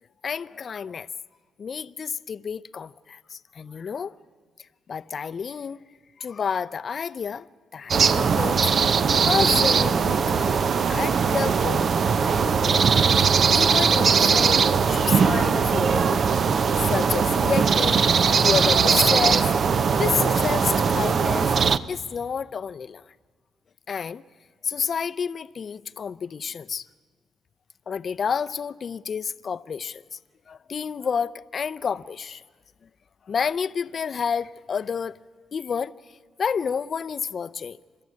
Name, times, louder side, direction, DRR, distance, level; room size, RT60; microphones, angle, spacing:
voice 1, 0.2-1.1 1.6-4.1 4.9-5.8 6.2-7.5 7.7-8.6 9.3-10.6 10.9-11.9 12.2-12.9 13.2-16.2 16.7-19.6 20.0-21.5 21.9-23.0 23.9-24.2 24.6-26.9 27.9-30.2 30.5-32.4 33.3-35.2 35.5-35.9 36.4-37.8, left 6 dB, 45° left, 0.6 m, -29 dB
sound 1, 7.9-21.8, right 6 dB, 50° right, 0.7 m, -20 dB
28.5 x 13.0 x 9.6 m
cardioid pair, 90°, 0 cm